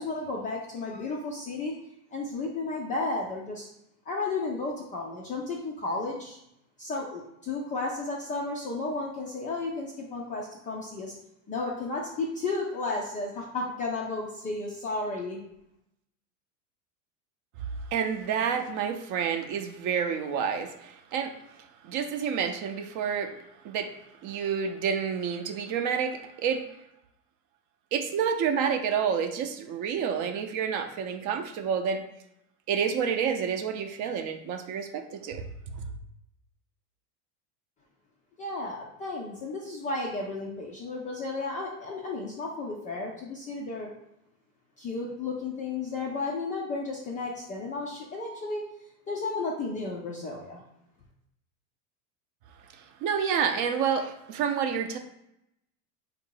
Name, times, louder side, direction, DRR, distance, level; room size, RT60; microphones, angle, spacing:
voice 1, 0.0-1.7 2.1-3.7 4.1-6.4 6.8-11.1 11.5-15.4 38.4-43.9 44.8-48.7 49.1-50.6, left 3 dB, 20° left, -2 dB, 0.3 m, -33 dB
voice 2, 17.9-21.4 21.8-23.3 23.6-23.9 24.2-26.6 27.9-32.0 32.7-35.4 53.0-55.0, right 7 dB, 40° right, 6 dB, 0.6 m, -29 dB
3.9 x 2.6 x 4.5 m, 0.79 s
supercardioid pair, 115°, 47 cm